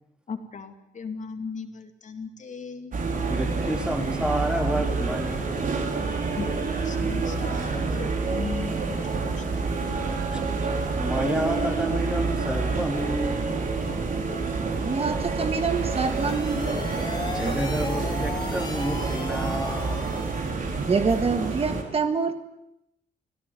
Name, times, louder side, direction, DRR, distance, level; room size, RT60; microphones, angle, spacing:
voice 1, 0.3-3.0 6.4-8.8 9.3-9.4, left 5 dB, 45° left, 2.5 m, -37 dB
sound 1, 2.9-21.8, right 4 dB, 55° right, 4.4 m, -28 dB
voice 2, 3.3-5.6 10.3-10.7 11.0-13.7 17.2-20.2, right 1 dB, 5° right, 3.0 m, -30 dB
voice 3, 14.8-16.8 20.8-22.3, right 5 dB, 35° right, 1.6 m, -26 dB
sound 2, 15.8-20.6, left 3 dB, 25° left, 3.1 m, -37 dB
25.5 x 17.5 x 9.5 m
wide cardioid pair, 150°, 17 cm